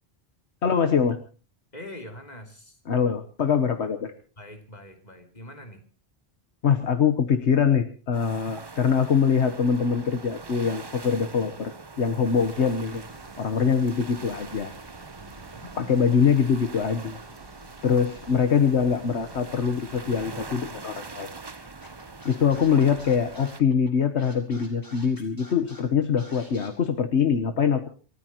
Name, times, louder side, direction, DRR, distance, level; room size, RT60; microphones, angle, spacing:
voice 1, 0.6-1.2 2.9-4.1 6.6-13.0 13.4-14.7 15.8-17.2 17.8-21.3 22.2-27.9, left 6 dB, 70° left, 8 dB, 1.4 m, -23 dB
voice 2, 1.7-2.8 4.4-5.8 15.2-15.8, left 1 dB, 35° left, 5 dB, 3.1 m, -43 dB
sound 1, 8.1-23.6, right 3 dB, 25° right, 0.8 m, -43 dB
sound 2, 12.2-20.5, right 2 dB, 55° right, 3.8 m, -51 dB
Scratching (performance technique), 21.8-26.7, equal, 15° left, 4.7 m, -49 dB
28.0 x 14.5 x 3.0 m, 0.38 s
omnidirectional pair, 1.2 m